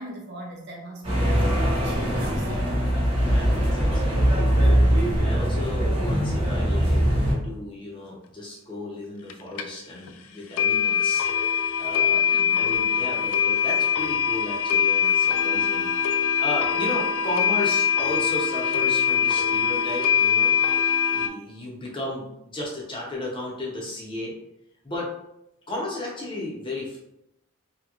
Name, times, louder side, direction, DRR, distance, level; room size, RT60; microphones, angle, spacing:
voice 1, 0.0-1.4 1.7-2.7 12.1-12.7, right 1 dB, 50° right, -1 dB, 0.6 m, -40 dB
sound 1, 1.0-7.3, equal, 25° right, 1.2 m, -21 dB
voice 2, 3.1-20.5 20.8-24.3 24.8-25.1 25.7-27.0, left 2 dB, 25° left, -3 dB, 0.7 m, -34 dB
sound 2, 9.3-9.4 9.6-9.7 10.1-10.2 10.6-21.3, left 8 dB, 80° left, 0.3 m, -23 dB
2.9 x 2.8 x 2.4 m, 0.83 s
head